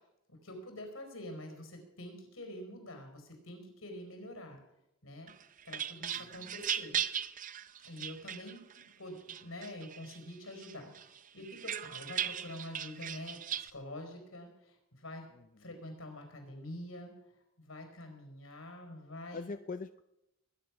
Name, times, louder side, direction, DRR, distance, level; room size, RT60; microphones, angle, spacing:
voice 1, 0.4-4.6 5.0-5.3 5.6-7.0 7.8-15.3 15.6-17.1 17.6-19.5, left 1 dB, 80° left, 4 dB, 4.4 m, -46 dB
sound 1, 5.3-8.8 9.3-10.2 10.6-13.7, right 9 dB, 40° right, 0.6 m, -38 dB
voice 2, 6.2-6.5 15.3-15.7 19.3-20.0, left 4 dB, 40° left, 10 dB, 0.5 m, -43 dB
20.5 x 9.9 x 6.0 m, 0.90 s
head